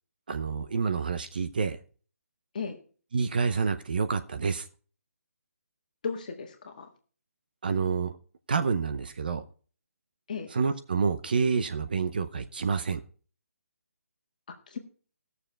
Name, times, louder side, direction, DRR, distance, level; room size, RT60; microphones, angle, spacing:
voice 1, 0.3-1.8 3.1-4.7 7.6-8.1 8.5-9.4 10.5-13.0, right 5 dB, 35° right, 10 dB, 0.7 m, -28 dB
voice 2, 6.0-6.9 10.3-10.5 14.7-14.8, left 5 dB, 30° left, 5 dB, 1.6 m, -35 dB
17.0 x 6.9 x 4.3 m, 0.40 s
hypercardioid pair, 175°, 8 cm